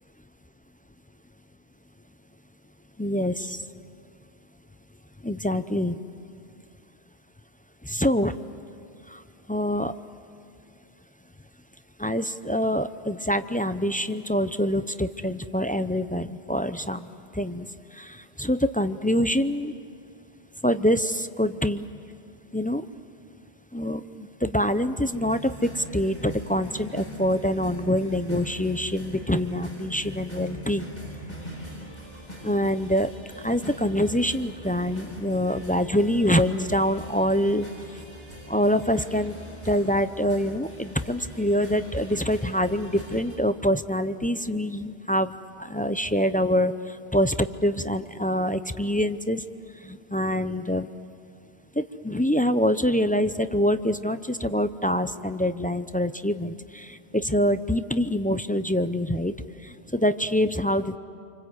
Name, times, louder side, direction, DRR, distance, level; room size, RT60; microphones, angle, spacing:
voice 1, 3.0-3.6 5.2-6.0 7.8-8.4 9.1-9.2 9.5-9.9 12.0-19.7 20.6-21.9 22.5-22.9 23.7-30.9 32.4-33.1 33.4-37.7 38.5-39.3 39.6-49.4 49.8-50.9 51.7-59.3 59.6-61.0, equal, 10° left, 10 dB, 0.4 m, -25 dB
sound 1, 25.1-43.4, equal, 40° left, 6.2 m, -41 dB
28.0 x 25.0 x 8.1 m, 2.3 s
omnidirectional pair, 1.1 m